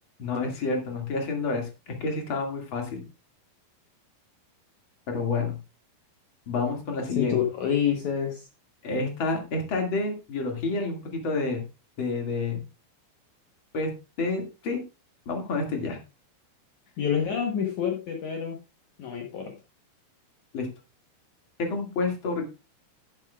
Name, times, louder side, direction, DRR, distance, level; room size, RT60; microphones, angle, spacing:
voice 1, 0.2-3.0 5.1-5.6 6.5-7.4 8.8-11.6 12.0-12.6 13.7-14.8 15.3-16.0 20.5-20.7 21.6-22.4, left 3 dB, 40° left, 3 dB, 2.1 m, -29 dB
voice 2, 7.1-8.5 17.0-18.6 19.0-19.6, left 8 dB, 70° left, 2 dB, 1.8 m, -27 dB
11.0 x 11.0 x 2.4 m, 0.28 s
omnidirectional pair, 5.1 m